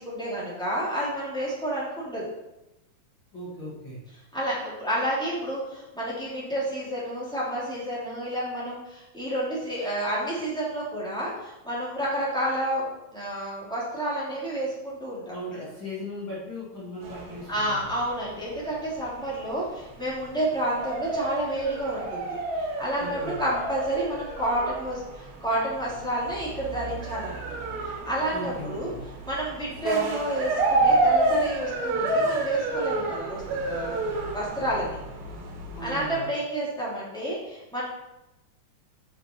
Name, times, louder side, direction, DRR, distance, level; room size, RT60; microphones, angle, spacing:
voice 1, 0.0-2.3 4.3-12.8 13.1-15.7 17.5-28.9 29.2-33.4 33.7-34.0 34.3-35.0 35.8-37.8, right 1 dB, ahead, -8 dB, 1.9 m, -30 dB
voice 2, 3.3-4.0 15.3-17.9 23.0-23.4 28.3-29.0 35.7-36.3, left 1 dB, 40° left, -8 dB, 2.0 m, -37 dB
sound 1, 17.0-36.1, right 2 dB, 85° right, 3.9 m, -30 dB
9.0 x 5.5 x 4.5 m, 0.95 s
omnidirectional pair, 4.9 m